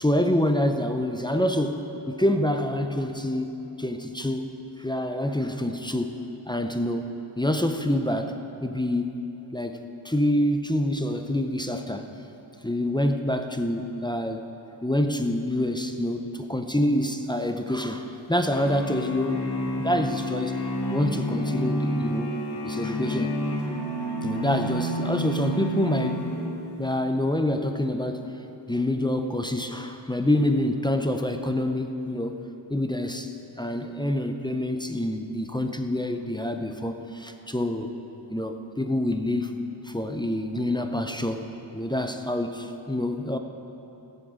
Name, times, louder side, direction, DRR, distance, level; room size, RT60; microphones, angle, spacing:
voice 1, 0.0-4.5 4.8-6.1 6.5-8.4 8.6-9.2 9.5-9.8 10.0-12.1 12.6-14.5 14.8-20.6 20.9-22.4 22.6-23.3 24.2-26.3 26.8-28.2 28.7-32.4 32.7-37.9 38.3-43.4, left 1 dB, 10° left, 5 dB, 0.5 m, -27 dB
sound 1, 18.5-26.8, equal, 55° left, 1.7 m, -30 dB
17.5 x 8.0 x 3.7 m, 2.9 s
wide cardioid pair, 110°, 48 cm